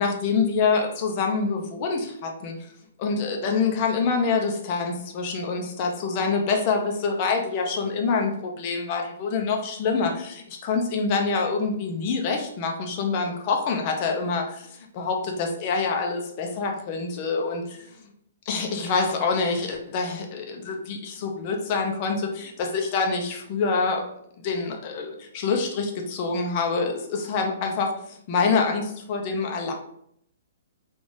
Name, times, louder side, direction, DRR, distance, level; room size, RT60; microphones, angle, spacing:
voice 1, 0.0-2.5 3.0-18.0 18.5-24.1 24.4-27.9 28.3-29.7, left 4 dB, 25° left, 2 dB, 0.5 m, -26 dB
3.7 x 2.4 x 3.9 m, 0.71 s
hypercardioid pair, 180°, 0 cm